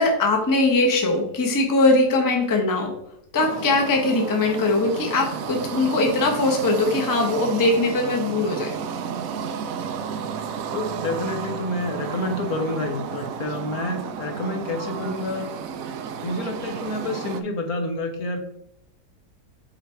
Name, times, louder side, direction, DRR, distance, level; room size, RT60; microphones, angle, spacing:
voice 1, 0.0-2.9 3.3-8.7, left 2 dB, 15° left, 1 dB, 0.7 m, -21 dB
sound 1, 3.4-17.4, right 7 dB, 70° right, 0.8 m, -32 dB
voice 2, 10.7-15.5 16.2-18.4, left 2 dB, 65° left, 4 dB, 1.2 m, -28 dB
8.0 x 3.4 x 4.4 m, 0.77 s
omnidirectional pair, 1.9 m